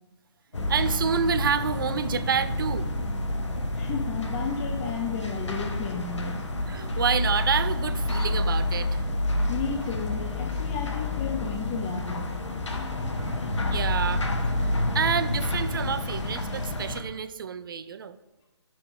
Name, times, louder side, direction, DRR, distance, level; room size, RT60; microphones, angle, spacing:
sound 1, 0.5-17.0, left 1 dB, 80° left, 1.1 m, -29 dB
voice 1, 0.7-2.9 6.7-9.0 13.2-13.4 13.7-18.2, right 7 dB, 50° right, 13 dB, 0.5 m, -29 dB
voice 2, 3.8-6.4 9.5-12.3, left 6 dB, 15° left, 1 dB, 0.4 m, -33 dB
6.2 x 4.5 x 4.9 m, 1.0 s
figure-of-eight pair, 150°, 15 cm